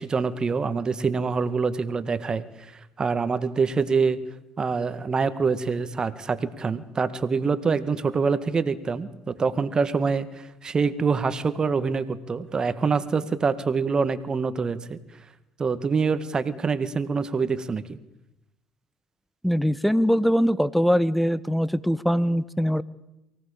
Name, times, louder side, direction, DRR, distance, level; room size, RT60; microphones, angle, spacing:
voice 1, 0.0-2.7 3.0-4.2 4.6-15.0 15.6-18.0, right 5 dB, 35° right, 13 dB, 2.0 m, -25 dB
voice 2, 19.4-22.8, equal, ahead, 18 dB, 1.2 m, -22 dB
24.0 x 17.5 x 8.7 m, 0.91 s
hypercardioid pair, 65°, 2 cm